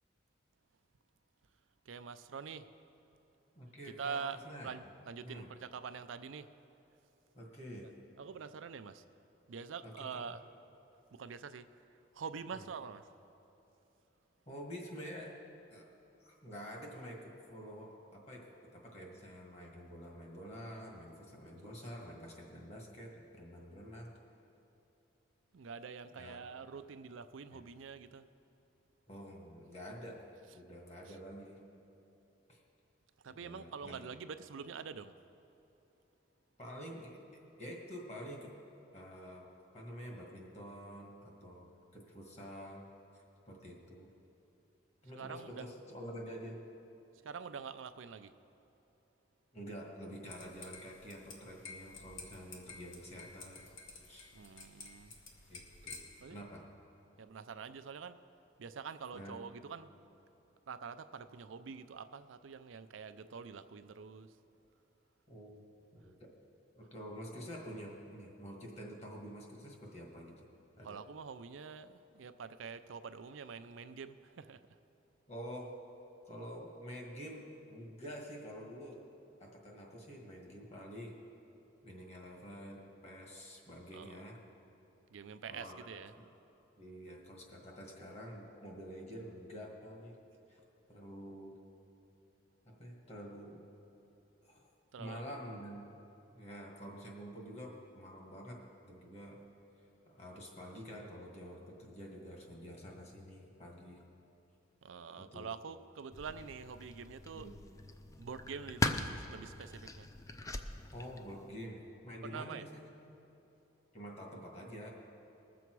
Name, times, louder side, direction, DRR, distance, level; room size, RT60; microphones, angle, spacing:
voice 1, 1.9-2.7 3.8-6.5 8.2-9.0 9.5-10.4 11.1-11.7 12.1-13.1 25.5-28.3 31.1-31.2 33.2-35.1 45.1-45.7 47.2-48.3 54.3-55.1 56.2-56.4 57.2-58.2 58.6-59.9 60.7-64.3 70.8-74.6 83.9-84.2 85.1-86.1 94.9-95.2 104.8-107.5 108.2-110.1 112.2-112.7, right 6 dB, 90° right, 11 dB, 0.5 m, -46 dB
voice 2, 3.6-4.7 5.2-5.5 7.3-7.9 9.8-10.2 12.5-12.7 14.5-15.4 15.7-15.9 16.2-17.2 17.5-24.1 26.1-26.4 27.5-27.6 29.1-30.2 30.5-31.6 32.5-32.6 33.4-34.1 36.6-37.2 37.6-38.5 38.9-39.5 39.7-42.9 43.5-44.1 45.0-46.6 49.5-53.6 54.1-54.3 55.5-56.6 59.1-59.4 65.3-65.6 66.0-66.3 66.8-70.5 70.8-71.0 75.3-75.7 76.3-79.0 79.4-81.2 81.8-84.4 85.5-85.9 86.8-90.2 90.5-90.6 90.9-91.6 92.7-93.6 94.4-94.7 95.0-95.9 96.3-99.3 100.1-104.0 105.2-105.5 107.3-107.6 110.9-112.9 113.9-114.9, equal, 35° left, 0 dB, 1.8 m, -48 dB
sound 1, 50.3-56.2, left 4 dB, 85° left, 1.4 m, -52 dB
sound 2, 106.1-111.5, left 2 dB, 15° left, 0.4 m, -40 dB
20.0 x 7.1 x 4.6 m, 2.9 s
head